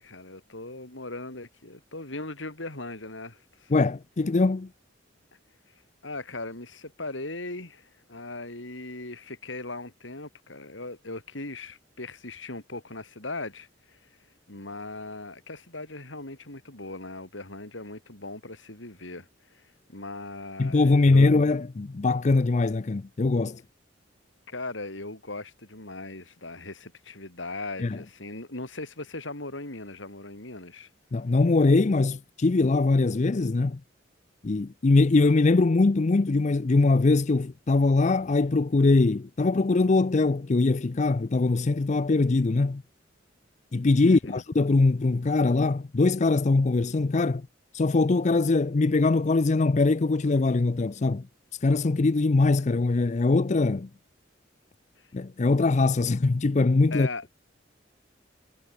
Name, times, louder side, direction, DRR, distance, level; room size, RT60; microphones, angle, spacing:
voice 1, 0.0-3.7 6.0-14.0 14.5-21.3 24.5-30.9 44.0-44.4 55.0-55.1 56.9-57.2, left 2 dB, 80° left, 5.5 m, -39 dB
voice 2, 3.7-4.7 20.6-23.6 27.8-28.0 31.1-33.8 34.4-42.8 43.7-47.5 47.7-51.3 51.6-53.9 55.1-57.1, left 3 dB, 40° left, 0.5 m, -22 dB
head